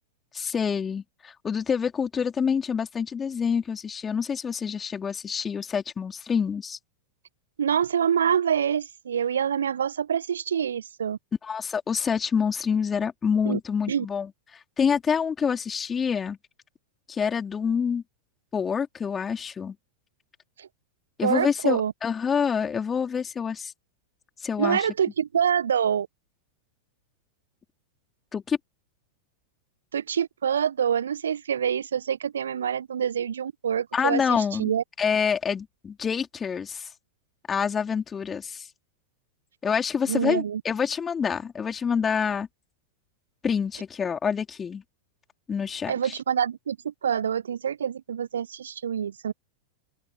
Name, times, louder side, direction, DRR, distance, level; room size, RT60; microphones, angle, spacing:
voice 1, 0.3-6.8 11.4-14.3 14.8-16.4 17.1-18.0 18.5-19.7 21.2-23.7 24.4-24.9 28.3-28.6 33.9-34.7 35.0-36.9 37.5-38.7 39.6-42.5 43.4-44.8 45.5-46.2, left 6 dB, 20° left, 4.4 m, -27 dB
voice 2, 7.6-11.2 13.4-13.6 13.9-14.0 20.6-20.7 21.2-21.9 24.6-26.1 29.9-34.8 40.1-40.6 45.9-49.3, right 8 dB, 65° right, 1.3 m, -26 dB
open air
figure-of-eight pair, 90°, 0 cm